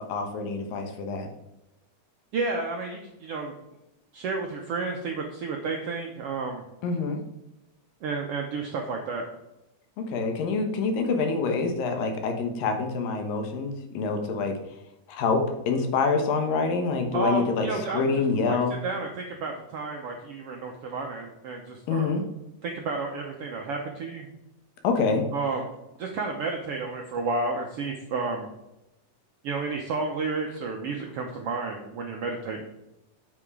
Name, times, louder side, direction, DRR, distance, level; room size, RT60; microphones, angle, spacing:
voice 1, 0.1-1.3 6.8-7.2 10.0-14.5 15.1-17.7 17.9-18.8 21.9-22.2 24.8-25.3, left 4 dB, 90° left, 5 dB, 2.9 m, -26 dB
voice 2, 2.3-3.5 4.1-6.6 8.0-9.2 17.1-18.6 18.8-22.2 22.6-24.3 25.3-25.7 26.0-28.5 29.4-32.6, right 3 dB, 80° right, 1 dB, 1.3 m, -31 dB
7.8 x 5.8 x 4.8 m, 0.90 s
omnidirectional pair, 3.8 m